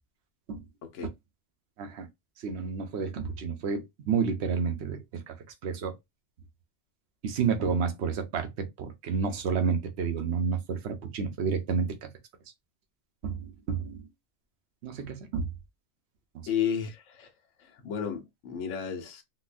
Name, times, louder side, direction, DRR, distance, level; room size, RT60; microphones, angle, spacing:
voice 1, 2.4-5.0 5.3-5.4 5.6-5.9 7.2-12.1 13.2-14.1 14.8-15.5 16.3-16.5, right 6 dB, 65° right, 1.0 m, -30 dB
voice 2, 16.5-17.3 17.6-19.2, left 8 dB, 75° left, 1.1 m, -32 dB
3.9 x 2.2 x 2.4 m
omnidirectional pair, 1.3 m